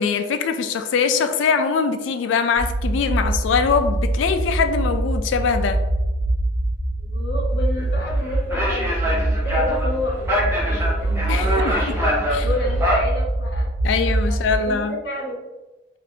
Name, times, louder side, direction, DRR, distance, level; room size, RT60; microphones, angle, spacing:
voice 1, 0.0-5.8 11.3-12.0 12.3-12.5 13.8-14.9, left 5 dB, 80° left, 0.3 m, -22 dB
sound 1, 2.6-14.6, right 1 dB, 60° right, 0.9 m, -24 dB
voice 2, 7.0-13.7 14.0-15.5, left 1 dB, 60° left, 0.8 m, -31 dB
sound 2, 7.8-13.0, equal, 15° right, 0.7 m, -24 dB
3.3 x 2.4 x 2.7 m
head